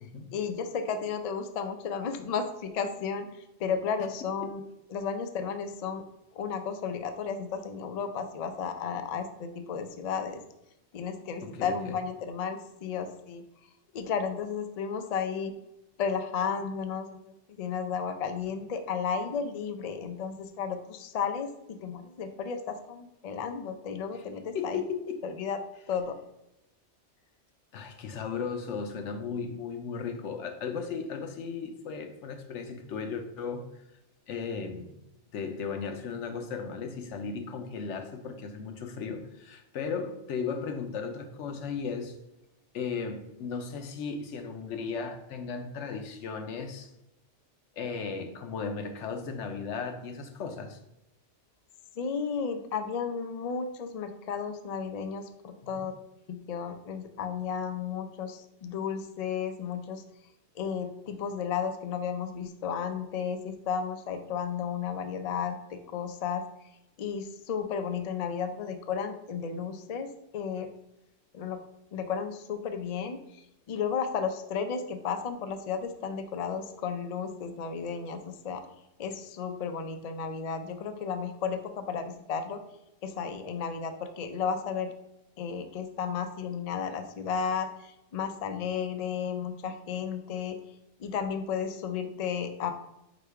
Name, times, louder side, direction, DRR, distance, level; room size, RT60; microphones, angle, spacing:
voice 1, 0.3-4.6 4.9-6.0 6.3-10.4 10.9-13.4 13.9-15.5 16.0-24.8 25.2-25.6 25.9-26.2 52.0-55.9 56.3-60.0 60.6-66.4 67.0-70.7 71.3-71.6 71.9-78.6 79.0-82.6 83.0-84.9 85.4-90.6 91.0-92.7, left 6 dB, 60° left, 7 dB, 0.4 m, -33 dB
voice 2, 11.4-12.0 24.1-24.2 24.5-25.2 27.7-33.7 34.3-35.0 35.3-42.2 42.7-46.9 47.8-50.8 55.6-55.9, left 5 dB, 85° left, 6 dB, 1.0 m, -36 dB
4.9 x 2.2 x 4.6 m, 0.87 s
omnidirectional pair, 1.2 m